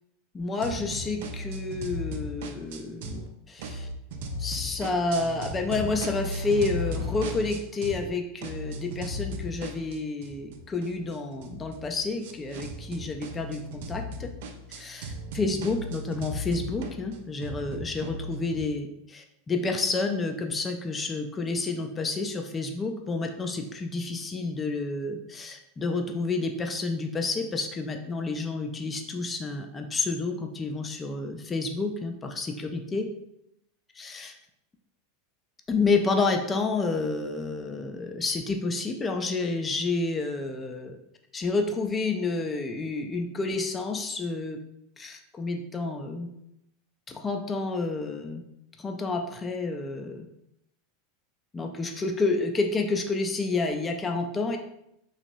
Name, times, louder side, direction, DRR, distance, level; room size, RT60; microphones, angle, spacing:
voice 1, 0.3-3.9 4.4-14.3 14.7-18.9 19.1-33.1 34.0-34.3 35.7-41.0 41.3-44.6 45.0-46.3 47.1-48.4 48.8-50.3 51.5-54.6, left 3 dB, 20° left, 5 dB, 0.4 m, -29 dB
sound 1, 0.6-3.3 3.6-8.1 8.4-18.6, equal, 55° right, 0.3 m, -36 dB
2.9 x 2.8 x 2.6 m, 0.79 s
figure-of-eight pair, 85°, 0 cm